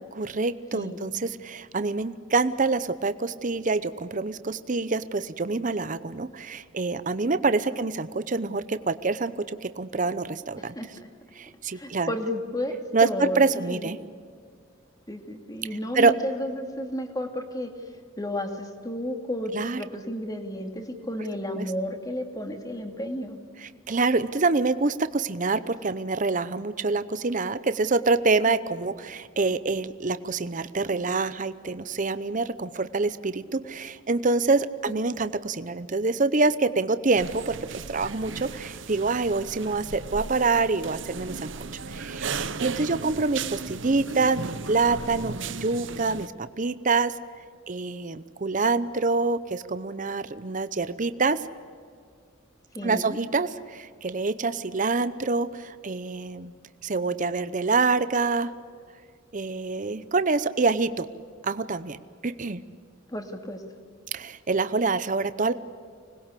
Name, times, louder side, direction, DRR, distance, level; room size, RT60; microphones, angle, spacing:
voice 1, 0.2-10.7 11.4-12.1 12.9-14.0 15.9-16.1 19.5-19.8 21.6-21.7 23.6-41.5 41.9-47.1 47.7-51.4 52.8-56.5 56.8-58.5 59.3-61.1 61.4-62.6 64.1-65.5, right 3 dB, 40° right, 13 dB, 0.7 m, -26 dB
voice 2, 10.6-11.1 11.7-13.9 15.1-17.9 18.2-23.4 34.9-35.1 43.0-43.1 52.7-53.2 63.1-63.6, left 1 dB, 20° left, 5 dB, 2.4 m, -32 dB
sound 1, 37.1-46.3, right 4 dB, 70° right, 1.0 m, -36 dB
25.5 x 20.5 x 8.4 m, 2.1 s
head